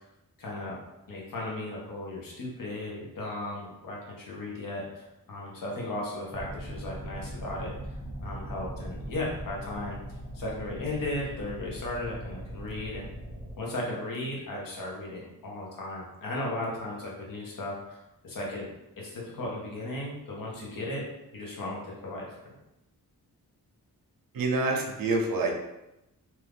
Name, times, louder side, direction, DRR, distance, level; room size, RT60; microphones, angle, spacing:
voice 1, 0.4-0.8 1.1-7.7 8.2-10.0 10.3-13.1 13.6-18.0 18.2-18.7 19.0-21.1 21.3-22.4, left 1 dB, 65° left, -3 dB, 1.0 m, -36 dB
sound 1, 6.3-13.6, right 1 dB, 5° right, 0.8 m, -40 dB
voice 2, 24.3-25.5, right 3 dB, 65° right, 1 dB, 0.7 m, -27 dB
2.9 x 2.4 x 3.4 m, 0.91 s
wide cardioid pair, 105°, 36 cm